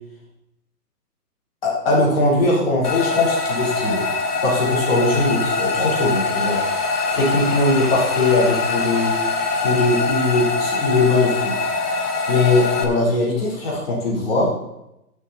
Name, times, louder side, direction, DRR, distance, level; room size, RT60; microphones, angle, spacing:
voice 1, 1.6-4.0 4.4-6.6 7.1-9.1 9.6-11.7 12.3-14.5, left 2 dB, 35° left, -4 dB, 4.0 m, -20 dB
sound 1, 2.8-12.8, left 3 dB, 75° left, 2.0 m, -23 dB
15.0 x 6.9 x 4.2 m, 0.86 s
hypercardioid pair, 165°, 48 cm